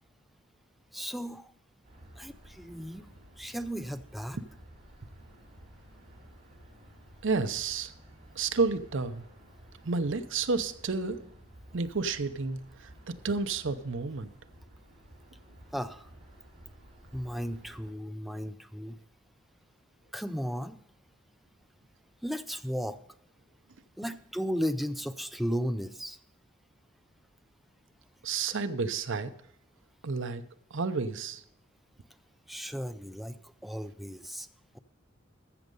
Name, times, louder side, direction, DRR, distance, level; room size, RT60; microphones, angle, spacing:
voice 1, 0.9-1.5 2.2-3.1 3.4-4.4 15.7-16.1 17.1-19.0 20.1-20.8 22.2-23.0 24.0-26.2 32.5-34.5, equal, ahead, 9 dB, 0.4 m, -35 dB
sound 1, 1.8-17.9, right 1 dB, 30° right, 4.1 m, -54 dB
voice 2, 7.2-7.9 8.4-9.3 9.8-11.2 11.7-14.3 28.2-29.3 30.0-30.4 30.7-31.4, right 4 dB, 65° right, 10 dB, 0.7 m, -31 dB
14.5 x 6.5 x 5.3 m, 0.71 s
head